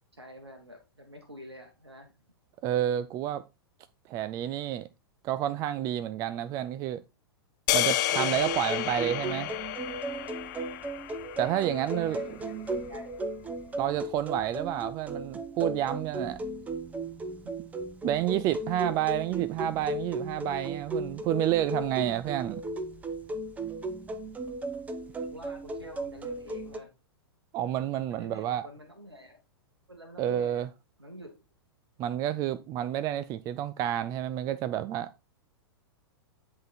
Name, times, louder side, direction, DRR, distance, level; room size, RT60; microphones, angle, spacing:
voice 1, 0.1-2.1 11.4-13.2 25.3-26.9 28.1-29.4 29.9-30.6 31.0-31.4, equal, 85° right, 1.6 m, -48 dB
voice 2, 2.6-3.4 4.1-4.9 5.2-7.0 7.7-9.5 11.4-12.2 13.8-16.4 18.0-22.6 27.5-28.7 30.2-30.7 32.0-35.1, right 12 dB, 25° right, 0.4 m, -29 dB
sound 1, 7.7-12.0, left 14 dB, 45° left, 0.6 m, -31 dB
sound 2, 8.1-26.8, right 2 dB, 10° right, 0.8 m, -36 dB
10.5 x 3.8 x 4.1 m
figure-of-eight pair, 100°, 13 cm